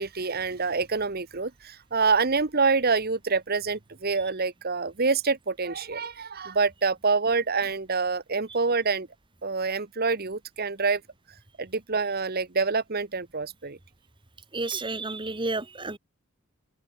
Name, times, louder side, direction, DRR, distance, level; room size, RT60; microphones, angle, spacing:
voice 1, 0.0-9.1 9.4-11.0 11.6-13.8, right 4 dB, 45° right, 1.2 m, -26 dB
voice 2, 14.5-16.0, right 3 dB, 20° right, 1.8 m, -31 dB
open air
head